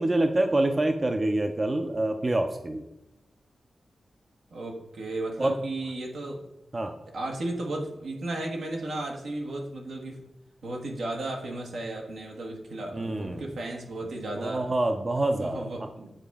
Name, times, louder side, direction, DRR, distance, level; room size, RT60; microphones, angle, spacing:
voice 1, 0.0-2.8 5.4-5.6 6.7-6.9 12.9-13.5 14.4-15.7, right 1 dB, 30° right, 6 dB, 0.5 m, -26 dB
voice 2, 4.5-6.4 7.1-10.2 10.6-14.7 15.3-16.1, right 2 dB, 85° right, 1 dB, 1.3 m, -34 dB
8.8 x 4.2 x 3.5 m, 0.91 s
wide cardioid pair, 90°, 0 cm